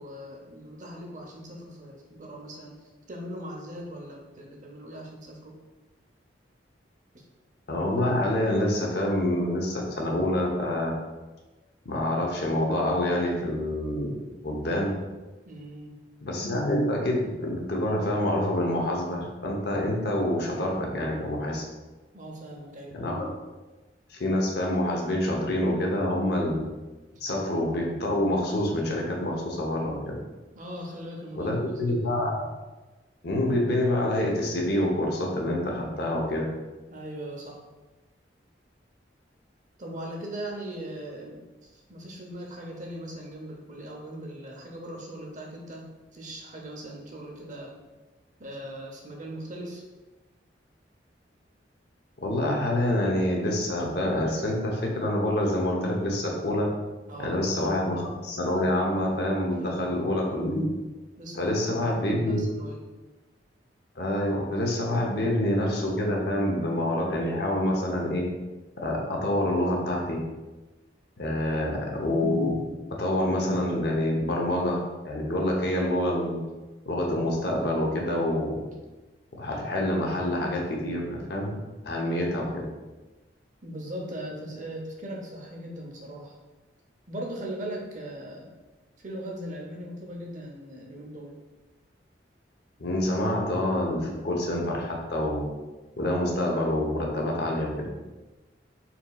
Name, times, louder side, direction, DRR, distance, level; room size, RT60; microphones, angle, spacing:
voice 1, 0.0-5.6 7.1-7.2 15.5-16.0 22.1-23.0 27.1-27.2 30.5-32.0 36.9-37.6 39.8-47.7 48.4-49.8 57.1-57.7 59.5-60.0 61.2-62.8 71.4-71.8 83.6-86.3 87.1-88.5 89.0-91.4, right 1 dB, 45° right, 0 dB, 0.7 m, -40 dB
voice 2, 7.7-11.0 11.8-14.2 14.4-15.0 16.2-21.6 22.9-23.3 24.1-26.7 27.2-30.2 31.3-32.4 33.2-36.5 52.2-56.7 57.2-60.7 61.4-62.4 64.0-68.3 68.8-70.3 71.2-76.4 76.9-78.6 79.4-81.6 81.8-82.7 92.8-95.5 96.0-97.9, left 1 dB, 60° left, -1 dB, 0.9 m, -27 dB
4.3 x 4.1 x 2.3 m, 1.2 s
head